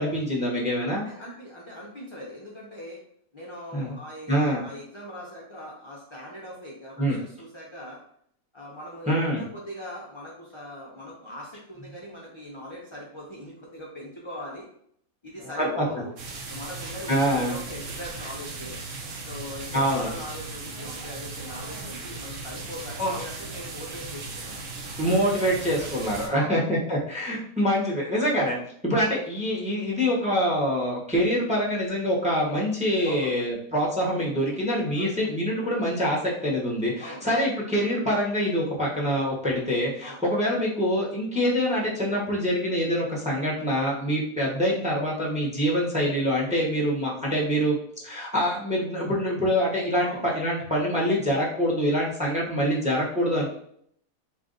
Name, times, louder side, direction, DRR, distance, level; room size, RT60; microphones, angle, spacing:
voice 1, 0.0-1.0 3.7-3.9 4.3-4.6 7.0-7.2 9.1-9.4 15.6-15.8 17.1-17.5 19.7-20.1 23.0-23.2 25.0-28.6 28.8-47.8 48.0-53.5, equal, 5° right, -4 dB, 0.7 m, -25 dB
voice 2, 1.0-3.0 3.3-8.0 8.5-14.7 15.2-16.2 16.5-18.8 19.3-24.6 25.8-25.9 26.2-26.8 33.0-33.4 35.0-35.3 37.0-37.3 40.0-40.2 50.0-50.3, left 1 dB, 40° left, -4 dB, 0.4 m, -41 dB
sound 1, 16.2-26.3, right 3 dB, 65° right, 1.1 m, -37 dB
3.4 x 2.5 x 3.8 m, 0.66 s
omnidirectional pair, 1.5 m